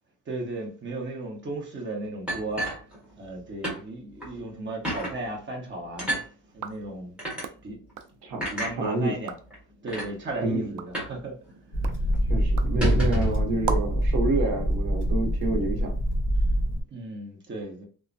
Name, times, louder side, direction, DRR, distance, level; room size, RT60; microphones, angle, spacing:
voice 1, 0.3-2.7 3.2-6.2 6.5-7.2 7.6-7.8 8.5-9.3 9.8-11.4 11.7-12.1 16.9-17.9, right 2 dB, 30° right, 1.0 m, -35 dB
sound 1, 2.3-3.4 3.6-3.8 4.2-4.3 4.8-5.1 6.0-6.3 7.2-7.4 8.4-8.7 9.5-9.6 9.9-10.1 10.9-11.2 11.5-11.6 11.9-12.1 12.6-13.4, right 1 dB, 5° right, 1.4 m, -30 dB
sound 2, 6.5-8.8 9.1-9.6 10.1-14.1, right 7 dB, 55° right, 0.4 m, -40 dB
voice 2, 8.8-9.2 10.4-10.7 12.3-16.0, right 2 dB, 85° right, 0.8 m, -28 dB
sound 3, 11.7-16.8, equal, 35° left, 1.1 m, -25 dB
3.1 x 2.1 x 2.6 m
cardioid pair, 125°, 36 cm